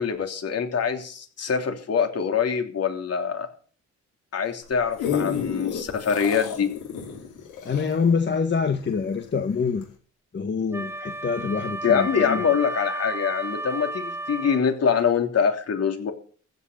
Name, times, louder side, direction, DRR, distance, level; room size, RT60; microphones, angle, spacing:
voice 1, 0.0-3.5 4.3-6.7 11.8-16.1, left 6 dB, 55° left, 5 dB, 3.2 m, -24 dB
sound 1, 4.6-9.3 9.8-9.9, left 7 dB, 85° left, 5.3 m, -31 dB
voice 2, 7.6-9.8 10.3-12.4, left 5 dB, 35° left, 7 dB, 1.5 m, -25 dB
Wind instrument woodwind instrument, 10.7-14.7, right 2 dB, 10° right, 0.9 m, -33 dB
15.5 x 6.8 x 9.0 m, 0.43 s
cardioid pair, 90°, 30 cm